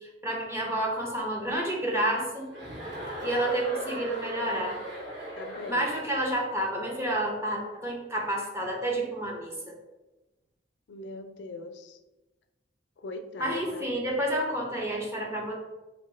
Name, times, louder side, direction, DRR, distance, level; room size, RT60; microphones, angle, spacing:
voice 1, 0.0-2.5 3.2-4.8 5.7-9.7 13.4-15.5, right 1 dB, 15° right, -1 dB, 0.7 m, -30 dB
Chuckle chortle, 2.5-6.3, right 1 dB, 85° right, 1.4 m, -38 dB
voice 2, 5.4-5.9 10.9-12.0 13.0-13.8, left 2 dB, 80° left, 7 dB, 0.4 m, -40 dB
2.8 x 2.6 x 4.3 m, 1.1 s
head